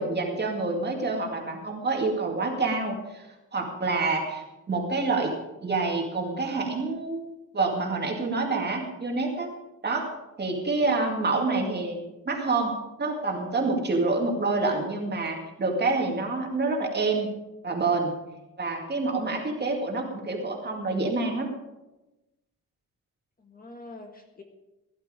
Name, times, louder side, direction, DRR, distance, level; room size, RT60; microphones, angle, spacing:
voice 1, 0.0-3.3 3.5-5.3 5.6-9.5 9.8-10.1 10.4-12.0 12.3-17.3 17.6-18.1 18.6-21.5, right 3 dB, 30° right, 1 dB, 2.3 m, -27 dB
voice 2, 10.6-11.6 23.4-24.4, left 2 dB, 25° left, 3 dB, 1.6 m, -45 dB
16.5 x 11.5 x 5.1 m, 1.0 s
wide cardioid pair, 170°, 32 cm